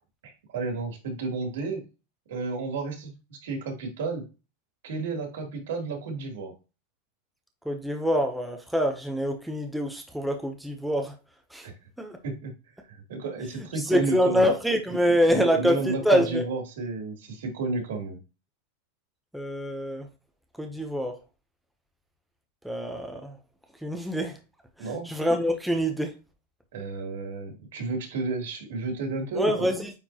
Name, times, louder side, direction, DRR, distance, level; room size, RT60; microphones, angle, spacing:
voice 1, 0.2-1.8 2.3-4.2 4.8-6.5 11.6-11.7 12.2-12.5 12.9-14.5 15.0-18.2 24.8-25.1 26.7-29.7, right 3 dB, 85° right, 2 dB, 3.0 m, -32 dB
voice 2, 7.7-11.1 11.5-11.7 12.0-12.2 13.9-16.4 19.3-20.1 20.6-21.1 22.6-23.4 23.8-24.4 24.8-26.1 29.3-29.9, equal, ahead, 3 dB, 0.7 m, -25 dB
9.1 x 4.2 x 2.9 m, 0.30 s
supercardioid pair, 175°, 0 cm